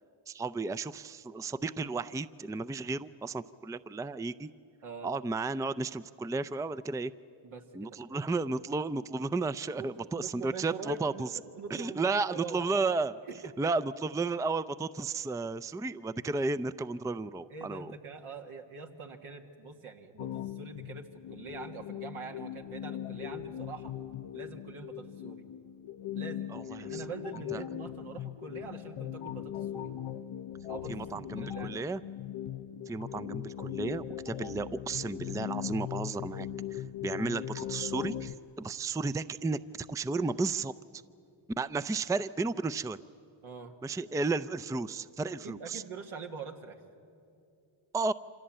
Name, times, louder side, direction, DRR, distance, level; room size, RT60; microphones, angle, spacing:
voice 1, 0.3-4.5 5.0-7.1 7.7-11.3 11.7-13.2 13.6-17.9 26.5-27.0 27.5-27.6 30.9-32.0 32.9-40.7 41.6-43.0 43.8-45.8 47.9-48.1, right 3 dB, 5° right, 13 dB, 0.5 m, -33 dB
voice 2, 7.4-8.2 9.8-11.2 11.5-12.7 13.3-13.4 17.5-24.0 24.3-25.5 26.1-29.9 30.7-32.0 43.4-43.8 45.4-46.8, right 4 dB, 75° right, 3 dB, 1.9 m, -44 dB
sound 1, 20.2-38.3, left 11 dB, 75° left, 0.8 m, -39 dB
25.5 x 17.0 x 8.9 m, 2.5 s
cardioid pair, 45°, 49 cm